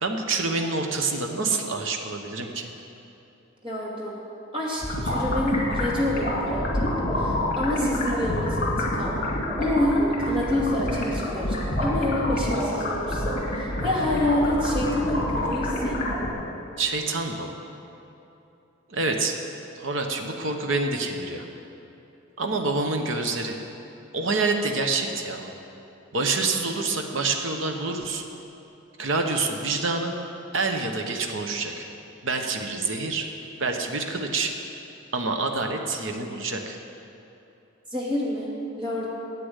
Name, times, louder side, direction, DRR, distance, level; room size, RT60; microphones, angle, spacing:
voice 1, 0.0-2.7 16.8-17.5 18.9-19.3 19.8-21.5 22.4-23.6 24.1-25.5 26.1-28.2 29.0-30.1 30.5-31.9 32.2-33.3 33.6-34.5 35.1-36.8, right 3 dB, 65° right, 4 dB, 1.0 m, -27 dB
voice 2, 3.6-4.2 4.5-9.1 9.6-16.0 37.9-38.5 38.8-39.1, left 1 dB, 25° right, -4 dB, 2.4 m, -27 dB
sound 1, 4.8-16.3, left 1 dB, 45° left, 2.4 m, -27 dB
10.0 x 8.7 x 8.1 m, 2.8 s
head